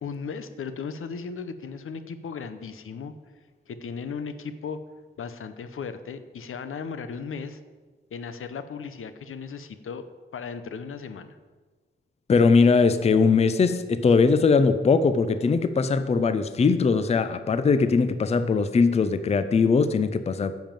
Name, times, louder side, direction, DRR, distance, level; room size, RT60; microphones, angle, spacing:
voice 1, 0.0-3.1 3.7-4.8 5.2-7.6 8.1-10.1 10.3-11.4, left 5 dB, 90° left, 11 dB, 0.8 m, -36 dB
voice 2, 12.3-20.5, left 4 dB, 30° left, 11 dB, 0.4 m, -20 dB
10.5 x 5.3 x 7.4 m, 1.4 s
wide cardioid pair, 175°, 21 cm